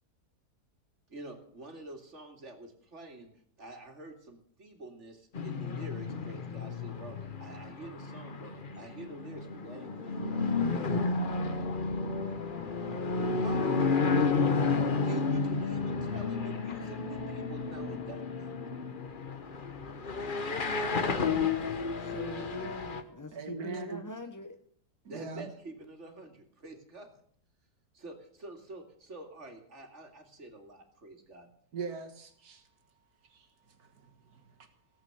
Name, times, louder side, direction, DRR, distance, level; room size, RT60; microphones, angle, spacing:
voice 1, 1.1-3.3 3.6-10.8 13.4-14.0 15.0-18.5 20.7-21.7 25.1-27.2 27.9-31.5, right 2 dB, 45° right, 4 dB, 2.7 m, -47 dB
sound 1, 5.3-23.0, left 4 dB, 35° left, 1.1 m, -32 dB
voice 2, 21.2-24.6, equal, 20° left, 6 dB, 0.6 m, -42 dB
voice 3, 23.3-24.0 25.0-25.5 31.7-32.6 33.3-33.5 33.8-34.5, right 5 dB, 70° right, 7 dB, 2.1 m, -41 dB
18.0 x 8.2 x 7.9 m, 0.62 s
omnidirectional pair, 1.7 m